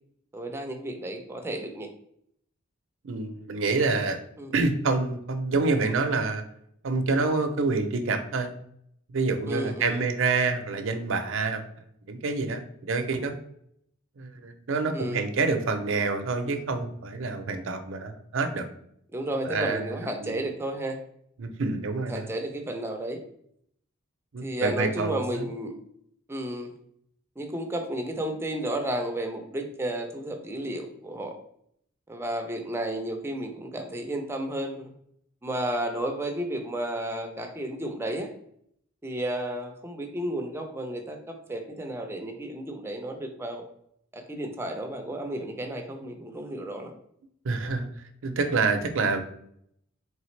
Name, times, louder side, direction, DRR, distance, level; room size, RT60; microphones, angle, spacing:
voice 1, 0.3-1.9 4.4-4.5 9.5-10.0 14.9-15.2 19.1-21.0 22.1-23.2 24.4-25.7 26.3-26.7 27.4-31.4 32.1-34.9 35.4-38.3 39.0-43.6 44.1-47.0, right 1 dB, 10° right, 4 dB, 0.5 m, -32 dB
voice 2, 3.0-4.2 4.5-6.4 6.8-8.5 9.1-11.6 12.1-13.3 14.2-18.7 19.5-20.4 21.4-22.3 24.3-25.5 47.4-49.2, right 3 dB, 65° right, 6 dB, 0.5 m, -27 dB
4.0 x 3.3 x 3.1 m, 0.70 s
head